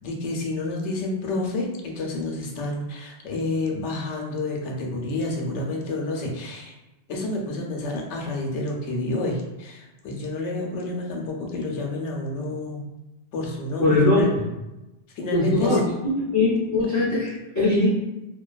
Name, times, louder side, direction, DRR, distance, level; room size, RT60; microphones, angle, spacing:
voice 1, 0.0-6.7 7.1-12.9 13.3-14.3 15.2-15.8, left 2 dB, 80° left, 0 dB, 0.9 m, -29 dB
voice 2, 13.8-14.4 15.3-15.8 16.2-17.9, left 2 dB, 20° left, -10 dB, 0.5 m, -21 dB
2.4 x 2.2 x 2.3 m, 1.0 s
omnidirectional pair, 1.2 m